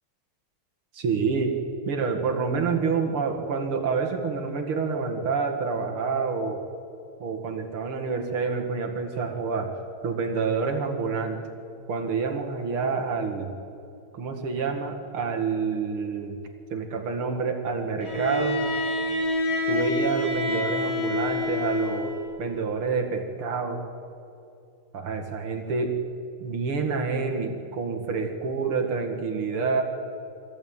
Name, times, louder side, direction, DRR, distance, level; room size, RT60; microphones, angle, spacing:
voice 1, 0.9-1.5 1.9-6.6 7.2-9.7 10.0-11.4 11.9-13.5 14.1-16.4 16.7-18.6 19.7-23.8 24.9-25.9 26.4-29.8, right 5 dB, 85° right, 3 dB, 2.8 m, -28 dB
Bowed string instrument, 18.0-22.3, left 2 dB, 50° left, 4.0 m, -27 dB
23.5 x 16.5 x 8.9 m, 2.6 s
omnidirectional pair, 2.3 m